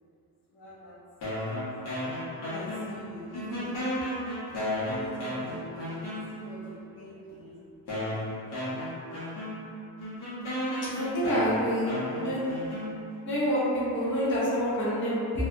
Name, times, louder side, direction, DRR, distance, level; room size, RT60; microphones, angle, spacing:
voice 1, 0.5-1.0 1.5-1.9 2.4-4.0 4.9-7.6 11.3-11.7 12.3-12.4, equal, 85° left, -5 dB, 0.7 m, -42 dB
sound 1, 1.2-3.1 3.3-6.6 7.3-7.4 7.9-13.3, equal, 55° left, 0.9 m, -34 dB
voice 2, 10.9-12.4 13.2-15.5, equal, 30° left, -10 dB, 0.6 m, -27 dB
2.6 x 2.3 x 2.4 m, 2.6 s
cardioid pair, 175°, 38 cm